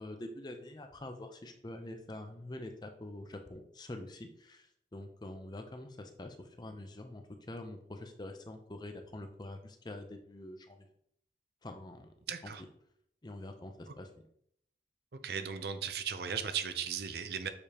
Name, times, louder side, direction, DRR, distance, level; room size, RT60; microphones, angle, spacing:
voice 1, 0.0-10.9 11.6-12.1 12.4-12.5 13.2-14.1, left 1 dB, 25° left, 6 dB, 0.5 m, -45 dB
voice 2, 12.3-12.6 15.2-17.5, right 7 dB, 60° right, 9 dB, 0.5 m, -36 dB
6.8 x 4.9 x 2.9 m, 0.70 s
head